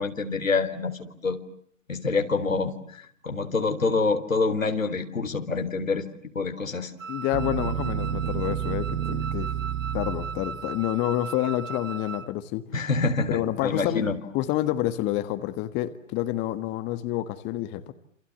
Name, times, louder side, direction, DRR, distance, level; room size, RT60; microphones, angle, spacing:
voice 1, 0.0-1.4 1.9-6.1 6.4-6.9 12.7-14.2, left 4 dB, 85° left, 8 dB, 3.6 m, -26 dB
Wind instrument woodwind instrument, 7.0-12.3, right 5 dB, 75° right, 1.5 m, -38 dB
voice 2, 7.1-9.5 9.9-12.7 13.3-14.0 14.3-17.9, left 14 dB, 30° left, 10 dB, 1.6 m, -28 dB
sound 1, 7.3-10.8, right 10 dB, 50° right, 1.8 m, -30 dB
28.0 x 28.0 x 7.4 m, 0.65 s
figure-of-eight pair, 120°, 39 cm